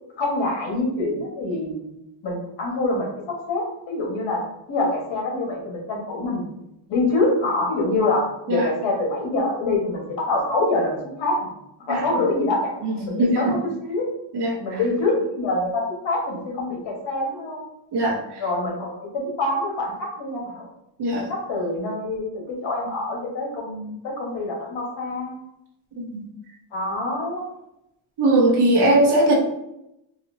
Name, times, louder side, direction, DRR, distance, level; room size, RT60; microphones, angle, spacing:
voice 1, 0.2-1.8 2.2-4.4 4.7-6.5 6.9-11.5 11.9-13.6 13.9-14.1 14.6-17.6 18.4-20.7 21.3-25.3 26.7-27.4, left 2 dB, 70° left, -1 dB, 1.4 m, -25 dB
voice 2, 12.8-13.6 14.3-14.8 17.9-18.2 21.0-21.3 26.0-26.2 28.2-29.3, right 1 dB, 55° right, -1 dB, 1.0 m, -20 dB
4.1 x 2.7 x 2.6 m, 0.85 s
cardioid pair, 110°, 47 cm